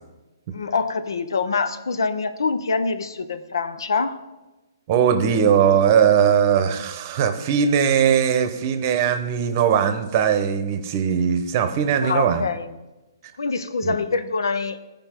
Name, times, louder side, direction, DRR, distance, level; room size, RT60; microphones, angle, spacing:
voice 1, 0.5-4.2 12.0-12.7 13.4-14.8, left 4 dB, 80° left, 11 dB, 0.8 m, -25 dB
voice 2, 4.9-12.5 13.8-14.0, right 8 dB, 35° right, 10 dB, 0.8 m, -19 dB
14.0 x 5.2 x 4.4 m, 1.1 s
hypercardioid pair, 150°, 2 cm